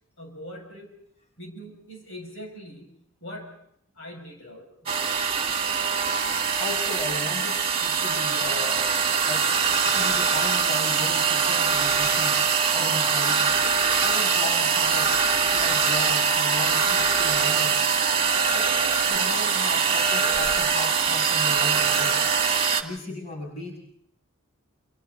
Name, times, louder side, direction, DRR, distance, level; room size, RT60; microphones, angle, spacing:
voice 1, 0.2-1.0 1.4-2.9 3.2-3.6 3.9-5.1, equal, 60° left, 2 dB, 6.8 m, -42 dB
sound 1, 4.9-22.8, right 6 dB, 25° right, 2.1 m, -23 dB
voice 2, 6.6-8.9 9.3-9.5 9.8-12.5 12.7-13.4 14.0-17.9 18.5-22.2 22.8-23.8, left 2 dB, 30° left, 0 dB, 6.9 m, -36 dB
28.5 x 28.0 x 4.1 m, 0.70 s
head